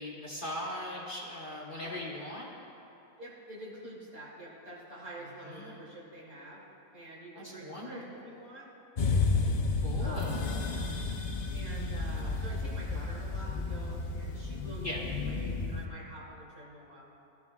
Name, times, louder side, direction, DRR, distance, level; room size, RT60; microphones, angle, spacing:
voice 1, 0.0-2.5 5.4-5.8 7.3-8.2 9.8-10.6 14.8-15.0, left 1 dB, 35° left, -4 dB, 1.2 m, -39 dB
voice 2, 3.2-6.6 6.9-8.7 10.0-10.4 11.5-17.0, right 1 dB, 65° right, -6 dB, 3.1 m, -47 dB
sound 1, 9.0-15.9, left 3 dB, 80° left, 0.4 m, -32 dB
17.0 x 12.5 x 2.3 m, 2.9 s
omnidirectional pair, 1.6 m